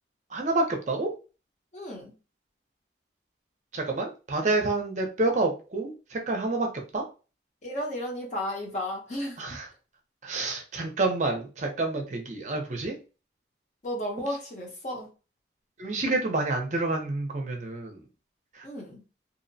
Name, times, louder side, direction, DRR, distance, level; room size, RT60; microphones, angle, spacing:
voice 1, 0.3-1.1 3.7-6.7 6.9-7.0 9.4-9.7 10.2-12.9 15.8-18.0 18.6-18.7, right 2 dB, 40° right, 3 dB, 0.5 m, -28 dB
voice 2, 1.7-2.1 7.6-9.4 13.8-15.1 18.6-19.0, left 1 dB, 40° left, 0 dB, 0.7 m, -33 dB
2.7 x 2.0 x 2.6 m, 0.32 s
head